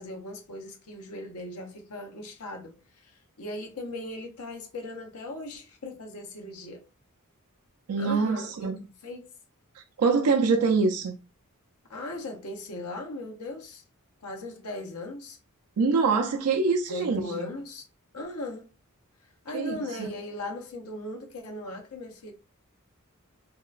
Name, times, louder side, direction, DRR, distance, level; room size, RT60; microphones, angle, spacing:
voice 1, 0.0-6.8 8.0-8.7 9.0-9.3 11.9-13.8 14.2-15.4 16.9-17.9 18.1-18.7 19.4-22.3, left 2 dB, 75° left, 0.8 m, -38 dB
voice 2, 7.9-8.8 9.8-11.1 15.8-17.5 19.5-20.1, right 4 dB, 80° right, 0.4 m, -25 dB
3.0 x 2.8 x 2.3 m
head